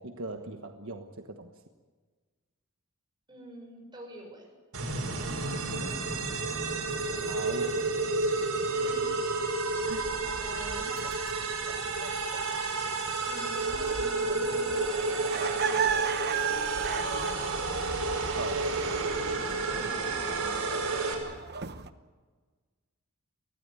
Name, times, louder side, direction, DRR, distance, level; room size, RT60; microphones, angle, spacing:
voice 1, 0.0-1.5 7.3-7.9 9.8-10.1 18.4-18.9, right 3 dB, 65° right, 5 dB, 1.4 m, -39 dB
voice 2, 3.3-4.5 5.8-6.0 8.7-9.5 10.1-10.9 13.2-14.8 15.2-15.9 18.6-18.8 19.7-20.8, right 1 dB, 20° right, 0 dB, 7.0 m, -47 dB
sound 1, 4.7-21.1, right 3 dB, 90° right, 5.7 m, -31 dB
sound 2, 9.9-21.9, right 7 dB, 50° right, 1.0 m, -37 dB
24.0 x 16.0 x 9.7 m, 1.4 s
head